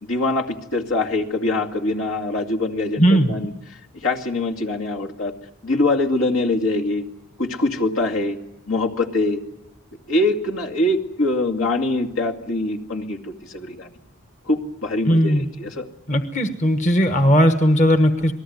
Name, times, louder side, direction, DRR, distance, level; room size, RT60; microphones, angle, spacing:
voice 1, 0.0-3.5 4.0-5.3 5.6-7.0 7.4-8.4 8.7-9.4 10.1-13.9 14.5-15.8, left 2 dB, 75° left, 1 dB, 2.3 m, -23 dB
voice 2, 3.0-3.3 15.1-15.4 16.1-18.3, equal, 35° left, 7 dB, 1.2 m, -17 dB
27.5 x 19.5 x 9.4 m, 0.89 s
head